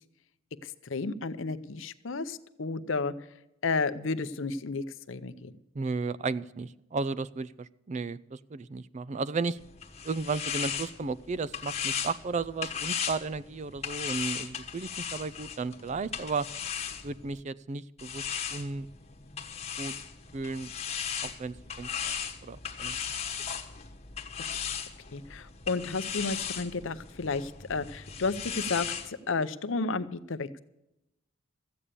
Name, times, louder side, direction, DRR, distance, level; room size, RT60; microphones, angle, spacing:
voice 1, 0.6-3.1 3.6-5.5 24.5-24.6 25.1-30.5, left 4 dB, 70° left, 13 dB, 0.7 m, -32 dB
voice 2, 5.7-9.6 10.0-16.5 17.0-18.9 19.8-19.9 20.3-20.7 21.2-22.1 22.4-23.0, right 4 dB, 35° right, 17 dB, 0.4 m, -34 dB
sound 1, 9.6-17.4 18.0-29.1, left 7 dB, 30° left, 1.2 m, -37 dB
14.0 x 8.8 x 6.8 m, 0.90 s
head